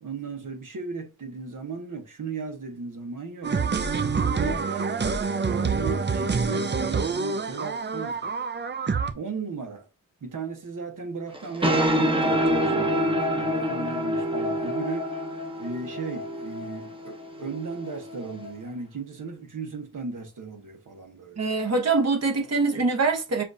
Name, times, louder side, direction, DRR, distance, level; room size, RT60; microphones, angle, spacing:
voice 1, 0.0-3.6 4.2-4.9 5.4-8.2 9.1-9.9 10.2-15.1 15.6-21.4, right 4 dB, 75° right, 1.1 m, -36 dB
sound 1, 3.4-9.1, right 5 dB, 35° right, 0.5 m, -26 dB
sound 2, 11.3-18.5, equal, 15° right, 0.9 m, -27 dB
voice 2, 21.4-23.4, right 3 dB, 50° right, 1.1 m, -24 dB
6.9 x 2.5 x 2.6 m
wide cardioid pair, 95°, 32 cm